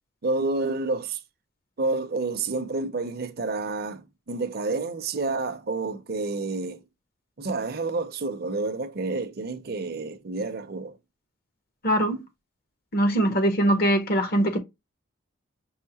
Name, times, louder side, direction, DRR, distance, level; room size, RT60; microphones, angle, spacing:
voice 1, 0.2-1.2 1.8-6.8 7.4-11.0, right 3 dB, 50° right, 0.6 m, -29 dB
voice 2, 11.8-12.2 12.9-14.6, right 1 dB, 50° left, 0.9 m, -22 dB
5.6 x 2.9 x 2.8 m
head